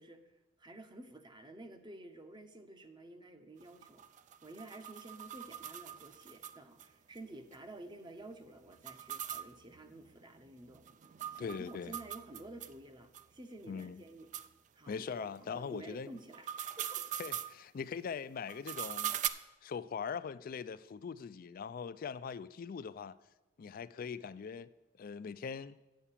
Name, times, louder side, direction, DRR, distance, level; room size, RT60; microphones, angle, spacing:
voice 1, 0.0-4.0 4.4-10.8 11.3-14.3 14.7-17.1, right 2 dB, 25° right, 0.7 m, -51 dB
sound 1, 3.6-6.9 7.2-7.3 7.5-7.6 8.7-12.7 13.1-13.2 13.8-13.9 14.3-14.5 16.2-17.5 18.5-19.3, right 10 dB, 40° right, 0.3 m, -41 dB
voice 2, 11.4-11.9 13.7-14.0 14.9-16.1 17.2-19.1 19.6-23.2 23.6-24.7 25.0-25.8, left 6 dB, 45° left, 0.3 m, -41 dB
8.3 x 5.8 x 7.3 m
head